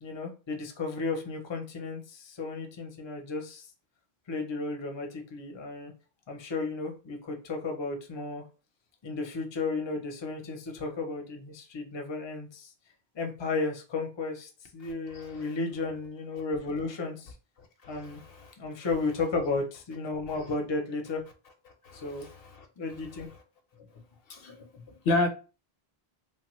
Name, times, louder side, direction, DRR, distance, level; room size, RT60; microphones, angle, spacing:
voice 1, 0.0-3.7 4.3-5.9 6.3-8.4 9.0-12.7 13.1-17.3 17.9-18.2 18.6-21.2 21.9-22.3 22.8-23.3 23.8-23.9 24.5-25.0, left 3 dB, 35° left, 0.5 m, -34 dB
voice 2, 14.8-15.5 17.8-18.5 21.8-22.7 24.3-24.5 25.0-25.3, left 2 dB, 70° left, 0.8 m, -32 dB
3.1 x 2.2 x 3.0 m
omnidirectional pair, 1.0 m